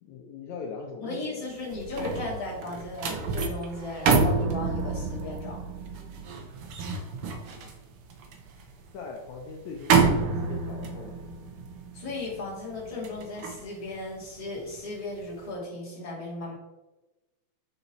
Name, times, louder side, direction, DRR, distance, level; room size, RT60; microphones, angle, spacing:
voice 1, 0.0-1.4 8.9-11.2, left 5 dB, 75° left, 1 dB, 2.0 m, -40 dB
voice 2, 1.0-5.6 11.9-16.5, left 2 dB, 10° left, -6 dB, 2.1 m, -36 dB
sound 1, 1.5-14.8 15.2-15.5, right 4 dB, 75° right, 1.3 m, -29 dB
7.0 x 5.6 x 4.1 m, 1.1 s
omnidirectional pair, 3.6 m